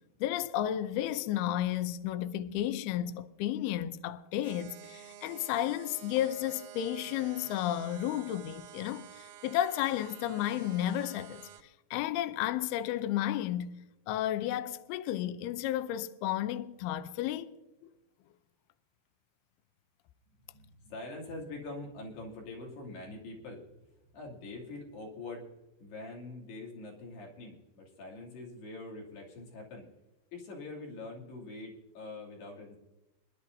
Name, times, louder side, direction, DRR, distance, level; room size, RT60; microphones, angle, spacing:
voice 1, 0.2-11.4 11.9-17.5 17.8-17.9, left 12 dB, 85° left, 2.3 m, -32 dB
sound 1, 4.4-11.6, right 11 dB, 90° right, 3.2 m, -50 dB
voice 2, 20.5-23.6 24.1-25.5 25.8-29.9 30.3-32.8, left 2 dB, 65° left, 4.7 m, -44 dB
25.5 x 11.5 x 2.7 m
omnidirectional pair, 5.2 m